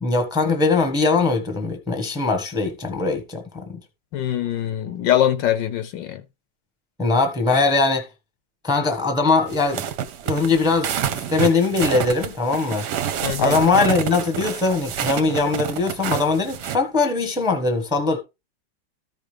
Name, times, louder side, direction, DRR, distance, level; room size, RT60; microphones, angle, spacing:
voice 1, 0.0-3.8 7.0-8.1 8.6-9.9 10.2-12.9 13.4-18.2, left 3 dB, 5° right, 1.0 m, -21 dB
voice 2, 4.1-6.2 13.2-13.7, left 11 dB, 70° left, 1.3 m, -23 dB
sound 1, 9.5-16.8, right 9 dB, 65° right, 1.2 m, -28 dB
14.0 x 5.2 x 3.3 m
omnidirectional pair, 2.2 m